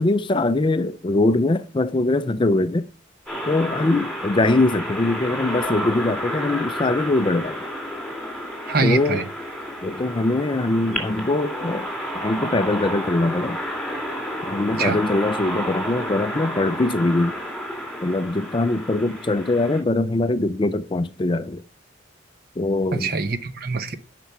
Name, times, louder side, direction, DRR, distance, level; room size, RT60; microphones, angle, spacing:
voice 1, 0.0-2.8 3.5-7.6 8.8-9.2 9.8-11.9 12.1-13.6 14.5-17.4 18.0-21.6 22.6-23.1, left 2 dB, 25° left, 0.4 m, -22 dB
sound 1, 3.3-19.8, equal, ahead, 2.8 m, -30 dB
voice 2, 8.7-9.2 14.8-15.0 22.9-24.0, right 4 dB, 50° right, 0.8 m, -24 dB
10.0 x 6.0 x 5.5 m
head